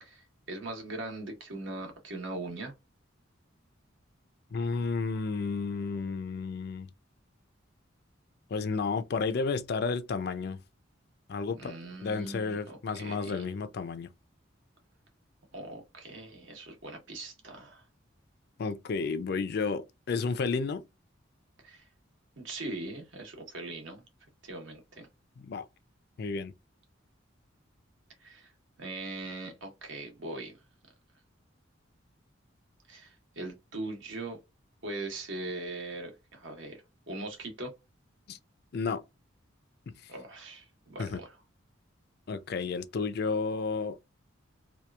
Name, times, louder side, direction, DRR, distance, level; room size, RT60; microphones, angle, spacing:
voice 1, 0.0-2.7 11.6-13.4 15.5-17.8 21.6-21.9 22.4-24.0 24.4-25.1 28.2-28.5 28.8-30.6 32.9-34.4 34.8-37.7 40.1-41.4, right 2 dB, 70° right, 1.0 m, -40 dB
voice 2, 4.5-6.9 8.5-10.6 11.3-14.1 18.6-20.8 25.4-25.7 26.2-26.5 38.3-38.4 38.7-39.0 39.9-40.1 41.0-41.2 42.3-44.0, left 4 dB, 55° left, 0.4 m, -32 dB
2.8 x 2.3 x 2.3 m
head